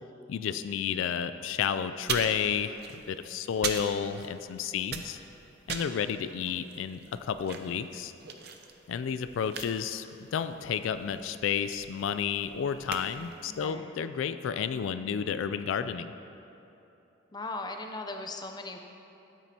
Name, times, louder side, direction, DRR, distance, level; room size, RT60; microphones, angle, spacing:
voice 1, 0.3-2.8 3.1-5.2 5.7-8.1 8.9-16.1, left 7 dB, 75° left, 11 dB, 0.3 m, -31 dB
sound 1, 2.0-4.5 4.8-13.7, right 6 dB, 50° right, 0.6 m, -40 dB
voice 2, 6.5-6.8 13.5-13.9 17.3-18.8, left 2 dB, 20° left, 4 dB, 0.5 m, -39 dB
13.0 x 9.1 x 2.8 m, 2.9 s
head